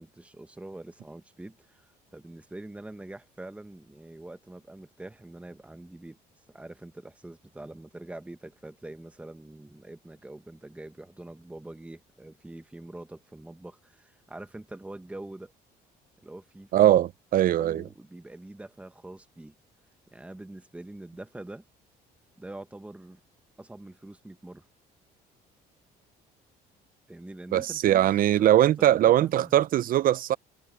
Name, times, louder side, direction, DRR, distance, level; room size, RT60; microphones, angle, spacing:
voice 1, 0.0-6.2 6.5-15.5 16.2-17.0 17.5-19.5 20.1-21.6 22.4-23.2 23.6-24.7 27.1-29.5, right 2 dB, 5° right, 1.3 m, -44 dB
voice 2, 16.7-17.8 27.5-30.4, right 12 dB, 55° right, 0.5 m, -21 dB
cardioid pair, 110°, 17 cm